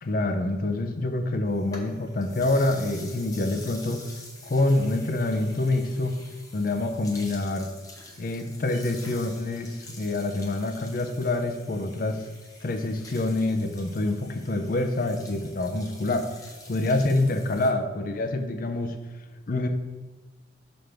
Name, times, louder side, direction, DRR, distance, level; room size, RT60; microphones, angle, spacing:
voice 1, 0.0-4.0 4.4-6.1 6.5-7.7 8.2-12.2 12.6-16.3 16.7-19.0 19.5-19.7, left 2 dB, 45° left, 7 dB, 0.5 m, -26 dB
sound 1, 1.5-17.7, left 2 dB, 20° left, 0.8 m, -47 dB
5.9 x 5.1 x 3.4 m, 1.2 s
head